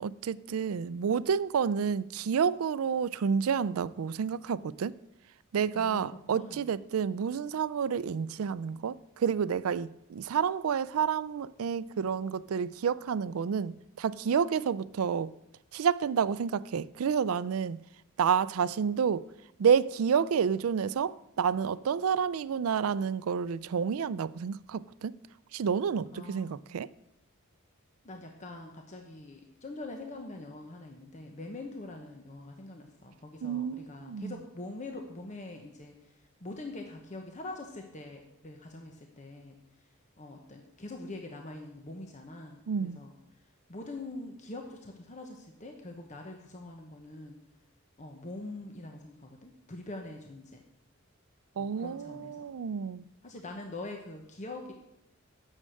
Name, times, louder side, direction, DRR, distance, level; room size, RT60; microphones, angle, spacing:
voice 1, 0.0-4.9 5.5-15.3 15.7-17.8 18.2-19.2 19.6-25.2 25.5-26.9 33.4-34.3 42.7-43.0 51.6-53.1, right 7 dB, 75° right, 0.4 m, -29 dB
voice 2, 5.7-6.7 26.1-26.7 28.0-39.6 40.2-43.1 43.7-47.4 48.0-50.6 51.6-52.4 53.2-54.7, left 2 dB, 35° left, 1.0 m, -44 dB
9.6 x 6.5 x 7.7 m
head